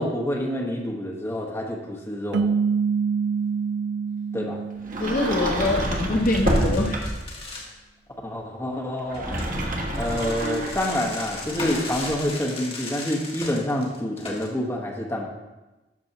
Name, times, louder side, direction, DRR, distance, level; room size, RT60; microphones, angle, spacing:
voice 1, 0.0-2.5 4.3-4.6 8.2-9.4 9.9-15.3, left 1 dB, 15° left, -1 dB, 1.4 m, -27 dB
sound 1, 2.3-5.7, right 5 dB, 75° right, 0.3 m, -26 dB
Sliding door, 4.8-7.4 9.0-12.2, equal, 50° right, 1.3 m, -28 dB
voice 2, 5.0-7.1, left 2 dB, 50° left, 1 dB, 0.7 m, -24 dB
sound 2, 5.2-5.3 5.7-5.8 6.2-7.7 9.1-14.5, left 2 dB, 35° left, 1.5 m, -37 dB
12.0 x 6.8 x 2.9 m, 1.1 s
head